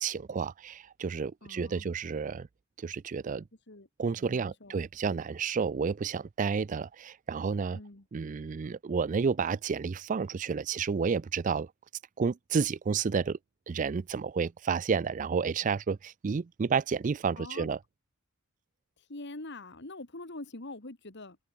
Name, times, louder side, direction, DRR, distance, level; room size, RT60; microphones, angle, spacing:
voice 1, 0.0-2.5 2.8-3.4 4.0-7.8 8.1-11.7 12.2-13.4 13.7-17.8, right 5 dB, 35° right, 0.4 m, -31 dB
voice 2, 1.4-1.9 3.7-3.9 4.2-4.8 7.7-8.0 17.4-17.7 19.0-21.4, left 2 dB, 55° left, 2.1 m, -44 dB
head